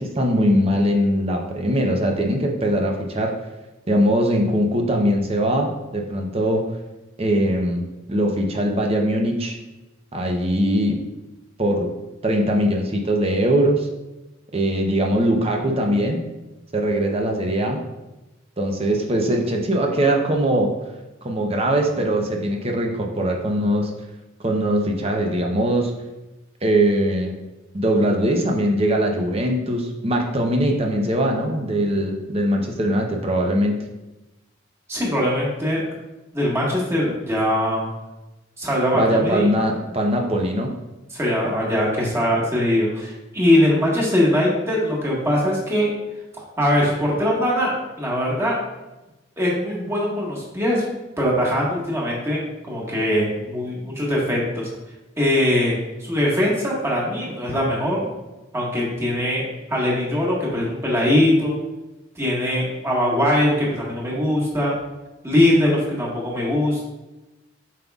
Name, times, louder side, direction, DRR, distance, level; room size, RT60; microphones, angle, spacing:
voice 1, 0.0-3.3 3.9-6.6 7.2-7.8 8.1-9.6 10.1-11.0 11.6-11.9 12.2-13.9 14.5-16.2 16.7-17.8 18.6-20.7 21.2-23.9 24.4-25.9 26.6-27.3 27.7-33.8 38.9-40.7, right 1 dB, 30° right, 1 dB, 0.7 m, -21 dB
voice 2, 34.9-35.8 36.3-37.8 38.6-39.5 41.1-45.9 46.6-48.6 49.4-50.8 51.2-54.7 55.2-55.8 56.1-58.1 58.5-61.6 62.2-64.8 65.2-66.8, left 1 dB, 15° right, -5 dB, 1.5 m, -21 dB
7.5 x 5.3 x 2.4 m, 1.0 s
head